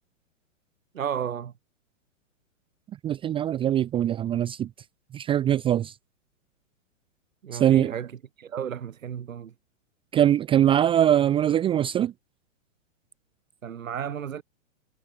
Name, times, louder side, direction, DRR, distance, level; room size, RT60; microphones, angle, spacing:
voice 1, 0.9-1.5 7.4-8.1 8.4-9.5 13.6-14.4, right 8 dB, 80° right, 7.8 m, -33 dB
voice 2, 3.0-4.7 5.1-5.9 7.5-7.9 10.1-12.1, right 11 dB, 15° right, 0.6 m, -22 dB
hypercardioid pair, 135°, 39 cm